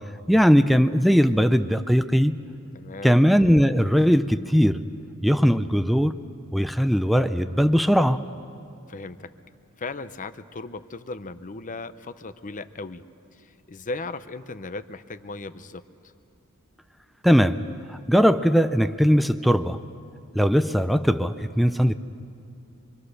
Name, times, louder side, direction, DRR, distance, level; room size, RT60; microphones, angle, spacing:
voice 1, 0.3-2.4 3.0-4.8 5.2-6.2 6.5-8.2 17.2-17.6 18.1-19.8 20.3-22.0, equal, ahead, 10 dB, 0.5 m, -19 dB
voice 2, 2.7-3.1 8.9-9.3 9.8-13.0 13.3-15.8, left 3 dB, 40° left, 12 dB, 0.7 m, -37 dB
26.0 x 24.5 x 6.5 m, 2.8 s
head